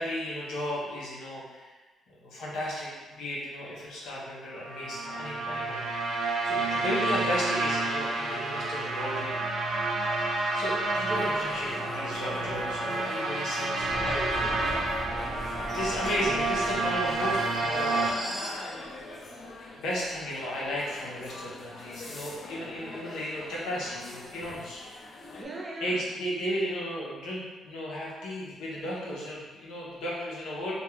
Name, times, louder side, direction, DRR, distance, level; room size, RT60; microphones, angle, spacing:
voice 1, 0.0-1.7 2.1-9.5 9.8-10.0 10.5-14.2 15.7-18.6 19.1-24.8 25.8-30.7, equal, 80° left, -5 dB, 0.8 m, -35 dB
sound 1, 4.6-18.1, right 2 dB, 80° right, 0.4 m, -30 dB
sound 2, 11.1-25.4, left 2 dB, 45° left, 0.4 m, -41 dB
sound 3, 13.8-18.6, right 1 dB, ahead, 1.0 m, -41 dB
voice 2, 13.9-15.4 25.4-26.0, right 2 dB, 30° right, -4 dB, 0.7 m, -40 dB
2.3 x 2.3 x 3.0 m, 1.2 s
cardioid pair, 90°, 0 cm